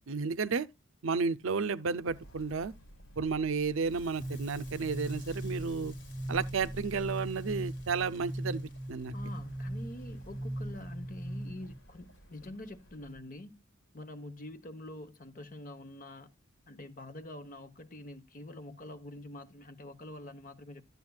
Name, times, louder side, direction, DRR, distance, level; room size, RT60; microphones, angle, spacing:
voice 1, 0.1-0.7 1.0-2.7 3.2-5.9 6.3-9.1, right 5 dB, 70° right, 0.5 m, -32 dB
Walk footsteps, 2.0-13.3, right 1 dB, 80° left, 2.7 m, -55 dB
Crackle, 3.6-12.6, left 1 dB, 55° left, 1.7 m, -55 dB
sound 1, 4.2-11.8, right 1 dB, 15° right, 0.5 m, -39 dB
voice 2, 9.1-13.5 13.9-16.3 16.7-20.8, left 1 dB, 40° left, 1.0 m, -46 dB
12.0 x 8.1 x 2.3 m
head